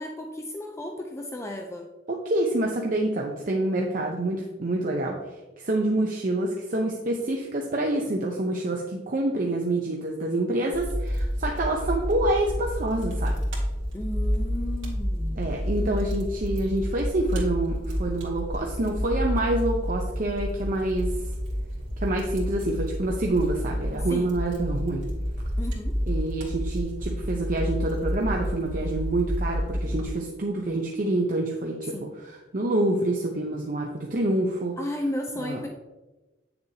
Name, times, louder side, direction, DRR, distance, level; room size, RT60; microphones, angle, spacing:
voice 1, 0.0-1.9 13.9-15.4 24.1-24.3 25.6-26.0 31.9-32.1 34.8-35.7, left 1 dB, 15° left, 2 dB, 0.5 m, -34 dB
voice 2, 2.1-13.3 15.4-21.3 22.0-25.1 26.1-34.8 35.4-35.6, right 1 dB, 45° right, 0 dB, 0.7 m, -27 dB
Fire, 10.7-30.0, equal, 80° right, 2.1 m, -29 dB
8.4 x 6.8 x 2.8 m, 1.1 s
head